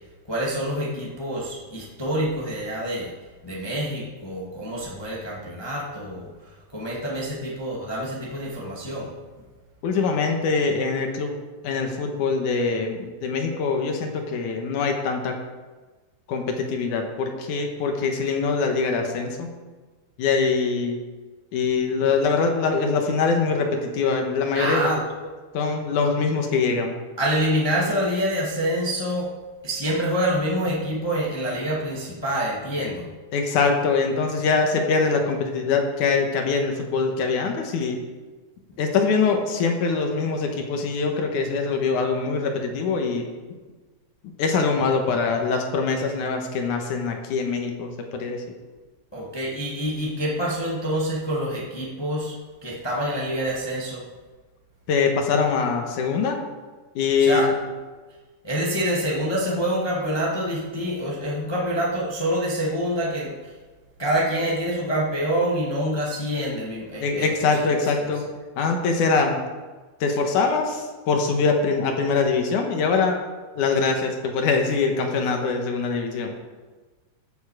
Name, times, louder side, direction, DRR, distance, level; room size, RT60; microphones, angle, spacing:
voice 1, 0.3-3.1 3.4-6.3 6.7-9.1 24.5-25.0 27.2-29.3 29.6-33.1 49.1-52.3 52.6-54.0 57.2-57.5 58.4-63.5 64.0-67.8, equal, 40° left, -4 dB, 0.3 m, -26 dB
voice 2, 9.8-11.4 11.6-15.4 16.3-19.5 20.2-21.0 21.5-24.9 25.5-26.9 33.3-38.0 38.8-43.3 44.4-48.4 54.9-56.4 57.0-57.4 67.0-68.3 68.6-69.4 70.0-73.2 73.6-76.3, left 4 dB, 65° left, 3 dB, 2.4 m, -23 dB
15.5 x 7.2 x 4.9 m, 1.3 s
omnidirectional pair, 4.4 m